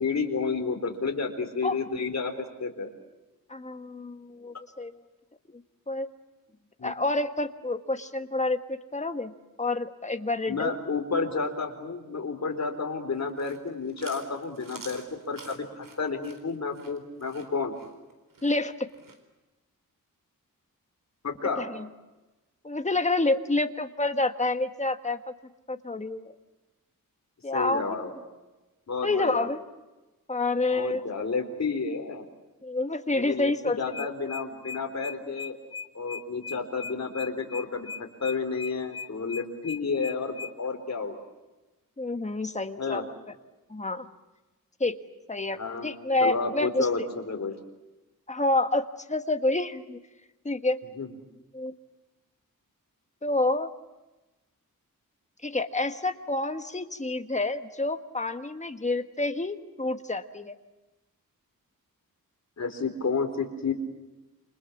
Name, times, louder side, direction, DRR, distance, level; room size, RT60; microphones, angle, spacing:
voice 1, 0.0-2.3 2.6-2.9 6.8-6.9 10.5-17.7 21.2-21.6 27.5-28.1 28.9-29.5 30.7-32.3 33.1-35.6 35.9-37.9 38.2-41.2 42.8-43.0 45.6-45.9 46.2-47.5 51.0-51.1 62.6-63.7, left 4 dB, 50° left, 4 dB, 4.1 m, -31 dB
voice 2, 3.5-5.0 5.9-6.1 6.8-9.3 9.6-10.7 18.4-18.9 21.6-21.9 22.6-25.2 25.7-26.3 27.4-28.0 29.0-29.6 30.3-31.2 32.6-34.1 42.0-43.0 43.7-44.1 44.8-45.0 45.3-46.9 48.3-50.0 50.4-50.8 51.5-51.7 53.2-53.7 55.4-60.5, left 2 dB, 20° left, 7 dB, 1.5 m, -28 dB
Chewing mastication, 13.2-19.2, right 4 dB, 65° right, 4.2 m, -48 dB
sound 1, 33.9-40.5, left 5 dB, 80° left, 1.2 m, -38 dB
28.5 x 27.0 x 7.2 m, 1.1 s
wide cardioid pair, 170°, 35 cm